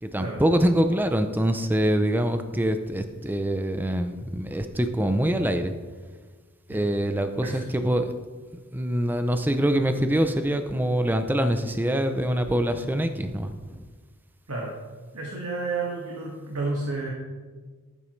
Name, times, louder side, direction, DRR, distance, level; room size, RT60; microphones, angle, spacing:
voice 1, 0.0-5.7 6.7-8.1 8.7-13.8, right 1 dB, 10° right, 8 dB, 0.4 m, -24 dB
voice 2, 7.4-7.7 14.5-14.7 15.1-17.1, right 3 dB, 90° right, -4 dB, 1.9 m, -31 dB
15.0 x 8.9 x 3.2 m, 1.4 s
head